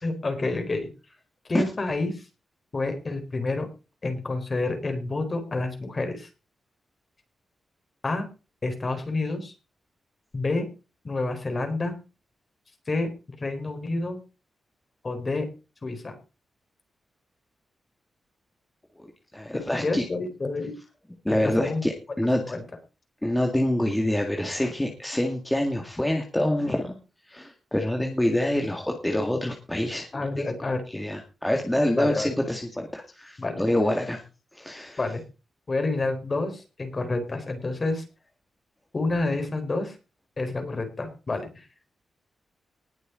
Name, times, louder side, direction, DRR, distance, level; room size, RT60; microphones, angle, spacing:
voice 1, 0.0-0.9 1.5-2.2 2.7-3.7 4.0-6.3 8.0-8.3 8.6-9.5 10.3-10.7 11.0-11.9 12.9-13.1 13.4-14.2 15.0-15.4 15.8-16.1 19.8-20.8 21.4-21.8 22.3-22.6 30.1-30.8 31.9-32.3 33.4-33.6 35.0-35.2 35.7-38.0 38.9-40.0 40.4-41.7, left 2 dB, 30° left, 6 dB, 4.2 m, -28 dB
voice 2, 19.3-20.0 21.3-22.4 23.2-27.0 27.3-30.2 30.9-34.2 34.5-35.0, left 1 dB, 5° left, 2 dB, 2.0 m, -26 dB
19.5 x 6.8 x 5.0 m, 0.32 s
wide cardioid pair, 150°, 0 cm